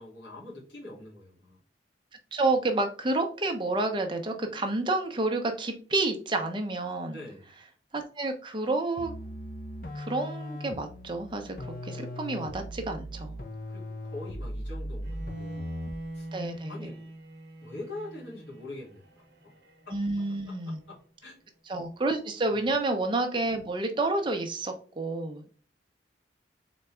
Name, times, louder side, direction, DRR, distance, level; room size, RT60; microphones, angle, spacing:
voice 1, 0.0-1.6 7.1-7.5 13.7-15.6 16.1-16.3 16.7-17.1 17.6-19.0 19.4-19.5 19.9-20.0 20.4-21.4 22.5-22.7, left 2 dB, 80° left, -5 dB, 2.0 m, -43 dB
voice 2, 2.3-7.2 7.9-9.1 9.9-11.5 11.8-13.3 16.3-16.8 19.9-20.8 21.7-25.5, right 2 dB, 25° right, 4 dB, 0.7 m, -29 dB
sound 1, 9.0-16.1, equal, 50° left, 0.7 m, -39 dB
Bowed string instrument, 15.0-21.1, right 1 dB, 60° right, 1.0 m, -43 dB
4.0 x 3.5 x 3.3 m, 0.39 s
head